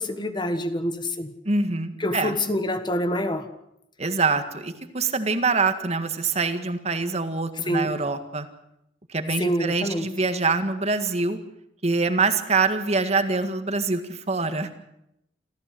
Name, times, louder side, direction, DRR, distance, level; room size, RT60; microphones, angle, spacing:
voice 1, 0.0-1.3 2.0-3.5 7.7-7.9 9.4-10.1, left 1 dB, 25° left, 9 dB, 1.5 m, -26 dB
voice 2, 1.5-2.3 4.0-8.5 9.1-11.4 11.8-14.7, right 4 dB, 35° right, 8 dB, 1.8 m, -25 dB
27.5 x 14.5 x 7.8 m, 0.81 s
head